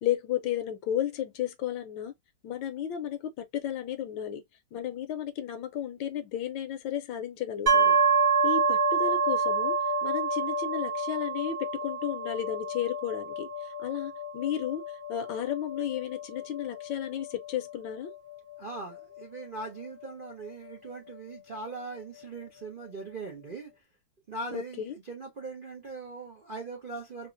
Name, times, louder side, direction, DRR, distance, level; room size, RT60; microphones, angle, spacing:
voice 1, 0.0-2.1 2.4-4.4 4.7-8.0 8.4-9.7 10.0-13.5 13.8-14.8 15.1-18.1 24.5-25.0, left 10 dB, 75° left, 1.2 m, -33 dB
sound 1, 7.7-21.3, right 4 dB, 40° right, 0.8 m, -28 dB
voice 2, 18.6-23.7 24.3-27.3, right 3 dB, 85° right, 0.4 m, -40 dB
3.7 x 2.0 x 2.6 m
omnidirectional pair, 2.3 m